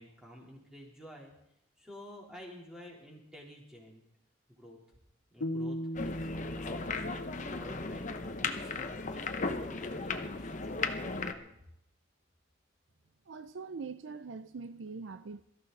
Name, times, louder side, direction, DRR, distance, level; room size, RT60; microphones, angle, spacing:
voice 1, 0.0-1.3 1.8-4.0 4.6-4.8 5.3-11.5, equal, 5° right, 3.7 m, -51 dB
sound 1, 5.4-8.5, equal, 60° left, 1.3 m, -39 dB
sound 2, 5.9-11.3, left 3 dB, 40° left, 0.9 m, -36 dB
voice 2, 13.3-15.4, right 4 dB, 65° right, 0.5 m, -43 dB
23.0 x 14.0 x 4.1 m
head